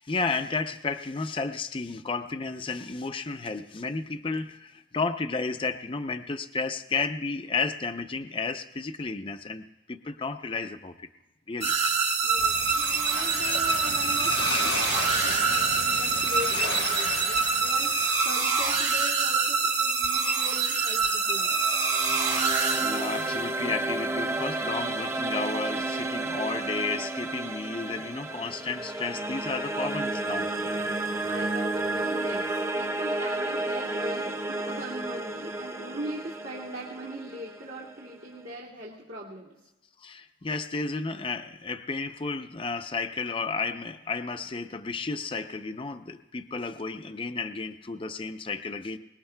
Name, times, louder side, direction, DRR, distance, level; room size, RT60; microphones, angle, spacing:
voice 1, 0.0-11.1 11.5-11.7 12.7-12.8 17.2-17.5 22.1-30.5 40.0-49.0, left 4 dB, 30° left, 8 dB, 0.5 m, -32 dB
sound 1, 11.6-23.5, right 5 dB, 40° right, 1.5 m, -25 dB
voice 2, 12.2-21.6 31.0-39.6, right 1 dB, 75° right, -6 dB, 2.3 m, -40 dB
sound 2, 12.4-18.5, left 5 dB, 75° left, 1.3 m, -35 dB
sound 3, 21.3-38.4, right 2 dB, 15° right, 0.7 m, -32 dB
23.5 x 20.5 x 2.2 m, 0.99 s
head